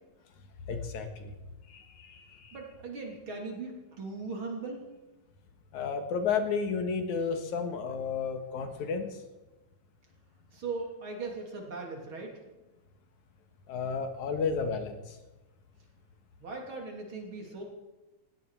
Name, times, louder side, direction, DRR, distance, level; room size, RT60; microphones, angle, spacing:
voice 1, 0.7-1.3 1.7-2.6 5.7-9.2 13.7-15.2, left 5 dB, 85° left, 7 dB, 3.0 m, -32 dB
voice 2, 2.5-4.8 10.5-12.4 16.4-17.6, right 3 dB, 45° right, 1 dB, 3.5 m, -39 dB
18.5 x 16.0 x 4.8 m, 1.1 s
omnidirectional pair, 3.3 m